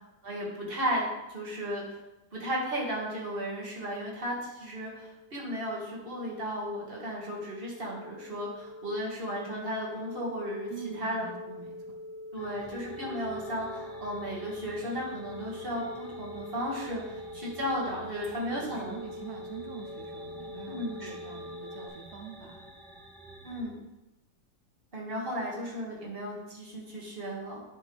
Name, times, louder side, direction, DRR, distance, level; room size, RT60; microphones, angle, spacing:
voice 1, 0.2-2.0 2.3-10.7 11.0-11.3 12.3-19.0 20.7-21.1 23.4-23.7 24.9-27.6, equal, 30° right, -4 dB, 2.0 m, -35 dB
sound 1, 4.9-21.9, left 1 dB, 35° left, 2.5 m, -44 dB
voice 2, 10.7-11.9 18.2-22.7, right 6 dB, 75° right, 2 dB, 0.6 m, -45 dB
sound 2, 12.3-23.6, right 2 dB, ahead, 0.9 m, -49 dB
10.0 x 5.3 x 3.4 m, 0.98 s
omnidirectional pair, 2.2 m